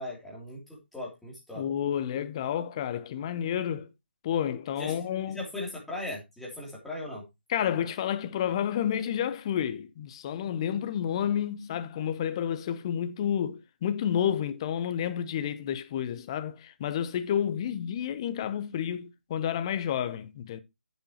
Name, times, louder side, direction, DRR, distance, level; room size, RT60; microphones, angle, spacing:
voice 1, 0.0-1.7 4.8-5.0 5.3-7.3, left 2 dB, ahead, 3.1 m, -38 dB
voice 2, 1.5-3.9 4.2-5.4 7.5-20.6, left 9 dB, 30° left, 0.9 m, -30 dB
10.0 x 8.6 x 3.0 m
figure-of-eight pair, 150°, 6 cm